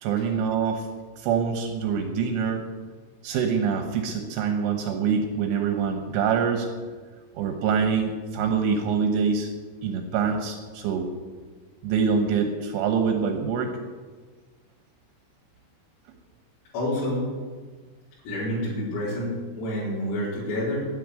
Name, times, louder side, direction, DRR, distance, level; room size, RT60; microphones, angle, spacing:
voice 1, 0.0-0.9 1.2-2.7 3.2-6.7 7.3-9.5 9.8-11.1 11.8-13.7, right 6 dB, 75° right, 4 dB, 3.4 m, -25 dB
voice 2, 16.7-17.3 18.3-20.9, left 1 dB, 80° left, -10 dB, 7.4 m, -28 dB
12.0 x 10.0 x 9.7 m, 1.4 s
omnidirectional pair, 6.0 m